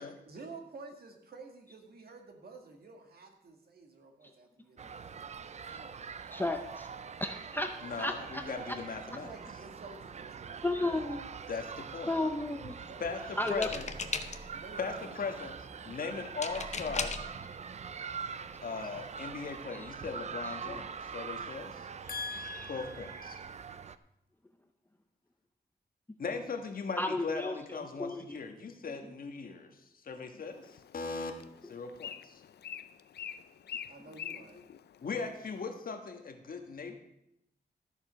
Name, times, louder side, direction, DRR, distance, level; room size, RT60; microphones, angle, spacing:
voice 1, 0.3-5.0 5.7-6.0 9.1-11.3 11.9-12.0 12.8-14.2 14.5-15.6 33.9-34.6, right 3 dB, 65° right, 4 dB, 1.9 m, -51 dB
sound 1, 4.8-24.0, right 6 dB, 40° right, 0.4 m, -44 dB
voice 2, 6.3-6.9 7.2-7.7 8.0-8.4 10.6-11.2 12.1-12.8 13.4-13.7 20.7-20.8 27.0-28.4, left 2 dB, 10° left, 6 dB, 0.5 m, -33 dB
voice 3, 7.8-9.4 11.5-12.2 13.0-13.9 14.8-15.5 15.8-17.2 18.6-23.4 26.2-29.8 30.0-31.3 31.6-32.4 35.0-37.0, left 4 dB, 55° left, 5 dB, 1.4 m, -39 dB
sound 2, 13.5-14.6 16.4-17.3 18.3-18.4 18.7-19.0, left 4 dB, 40° left, 0.8 m, -37 dB
Bird, 30.5-35.6, left 9 dB, 75° left, 0.5 m, -46 dB
13.0 x 7.1 x 5.6 m, 0.82 s
wide cardioid pair, 145°, 17 cm